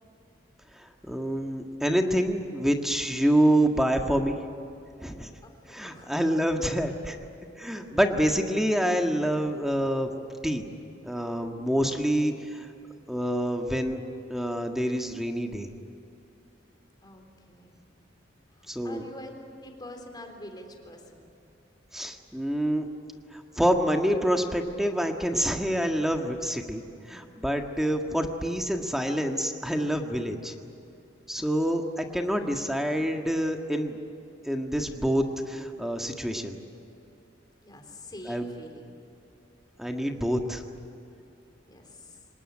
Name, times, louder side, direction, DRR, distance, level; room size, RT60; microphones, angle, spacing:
voice 1, 0.8-4.4 5.0-5.3 5.7-7.2 7.6-10.1 10.4-10.7 11.0-12.7 13.1-14.0 14.3-15.7 18.7-19.0 21.9-22.9 23.3-30.5 31.3-34.0 34.4-36.6 38.3-38.5 39.8-40.6, equal, ahead, 4 dB, 1.6 m, -27 dB
voice 2, 5.4-6.1 11.8-12.4 17.0-17.8 18.5-19.3 19.6-21.2 37.6-38.9 41.7-42.2, left 1 dB, 25° left, 3 dB, 3.6 m, -46 dB
25.5 x 19.5 x 10.0 m, 2.7 s
head